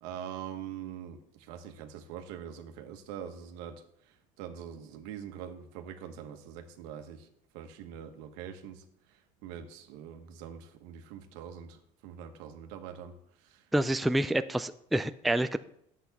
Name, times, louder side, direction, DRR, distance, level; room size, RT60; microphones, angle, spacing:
voice 1, 0.0-7.3 7.5-13.7, right 9 dB, 85° right, 6 dB, 1.3 m, -44 dB
voice 2, 13.7-15.6, right 1 dB, ahead, 11 dB, 0.3 m, -28 dB
10.5 x 7.8 x 4.1 m, 0.73 s
cardioid pair, 130°, 15 cm